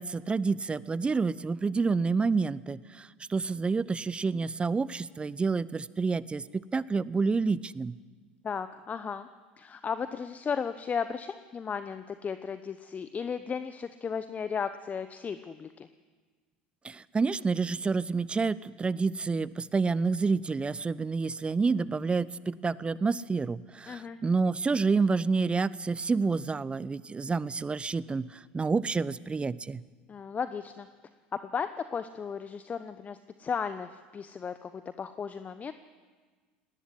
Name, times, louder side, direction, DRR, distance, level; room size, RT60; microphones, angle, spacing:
voice 1, 0.0-8.0 16.8-29.8, right 4 dB, 20° right, 19 dB, 0.8 m, -29 dB
voice 2, 8.4-9.3 9.6-15.9 23.9-24.2 30.1-30.9 31.4-35.7, left 6 dB, 30° left, 11 dB, 1.0 m, -35 dB
19.0 x 18.5 x 9.8 m, 1.5 s
hypercardioid pair, 75°, 5 cm